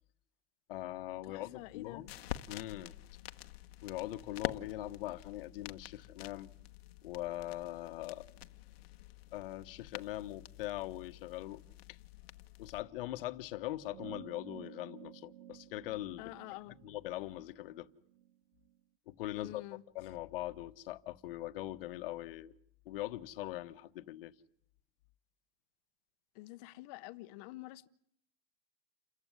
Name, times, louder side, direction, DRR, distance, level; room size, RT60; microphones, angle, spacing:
voice 1, 0.7-2.1 2.5-2.9 3.8-6.5 7.0-8.3 9.3-11.6 11.9-12.0 12.6-16.3 16.8-17.9 19.1-19.6 19.9-22.5 22.8-24.3, left 15 dB, 70° left, 1.3 m, -41 dB
voice 2, 1.2-2.0 16.2-16.8 19.3-19.8 26.3-27.9, left 19 dB, 40° left, 0.9 m, -48 dB
sound 1, 1.6-12.8, left 13 dB, 85° left, 1.2 m, -47 dB
sound 2, 13.9-18.8, right 12 dB, 60° right, 1.6 m, -54 dB
29.0 x 15.0 x 9.7 m
supercardioid pair, 165°, 30 cm